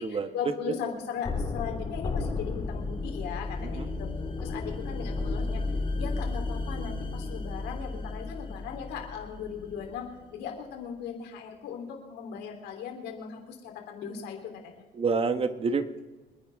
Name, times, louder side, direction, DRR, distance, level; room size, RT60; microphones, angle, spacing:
voice 1, 0.0-4.1 4.4-5.6 6.0-14.8, left 7 dB, 85° left, 2 dB, 3.5 m, -38 dB
sound 1, 1.2-10.1, left 3 dB, 30° left, 2.3 m, -33 dB
voice 2, 15.0-16.0, right 4 dB, 35° right, 10 dB, 1.3 m, -28 dB
27.0 x 10.0 x 3.6 m, 1.2 s
cardioid pair, 110°, 17 cm